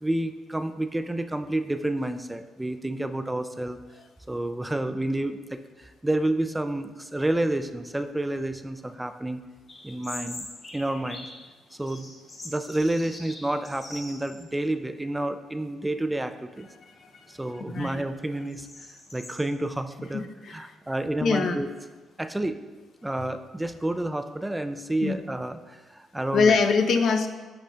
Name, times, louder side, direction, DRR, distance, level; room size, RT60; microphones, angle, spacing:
voice 1, 0.0-3.8 4.3-9.4 9.8-10.5 10.7-11.3 11.7-12.1 12.4-16.7 17.3-18.7 19.1-21.7 22.2-22.6 23.0-26.6, right 1 dB, 10° right, 9 dB, 0.3 m, -29 dB
sound 1, 9.7-11.4 11.8-14.5 14.8-14.9 15.7-16.1 16.5-19.4, left 2 dB, 40° left, 2.1 m, -43 dB
voice 2, 20.1-20.6 21.2-21.6 25.0-25.1 26.3-27.3, left 5 dB, 65° left, 6 dB, 0.5 m, -23 dB
10.5 x 4.9 x 2.2 m, 1.3 s
cardioid pair, 90°, 0 cm